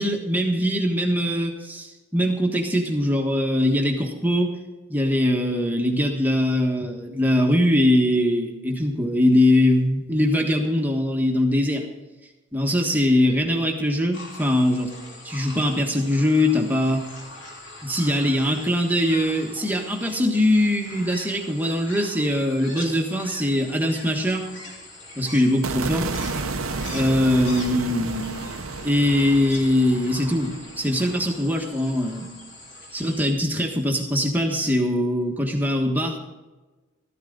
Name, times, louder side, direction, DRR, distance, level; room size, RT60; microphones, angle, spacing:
voice 1, 0.0-4.5 4.9-11.8 12.5-14.9 15.2-17.1 17.8-24.5 25.2-26.1 26.9-28.3 28.8-32.3 32.9-36.2, left 1 dB, 10° right, 1 dB, 1.4 m, -22 dB
sound 1, 14.1-33.3, left 2 dB, 55° left, 3.4 m, -42 dB
sound 2, 25.6-31.9, right 3 dB, 70° right, 0.9 m, -32 dB
14.0 x 13.5 x 3.9 m, 1.2 s
head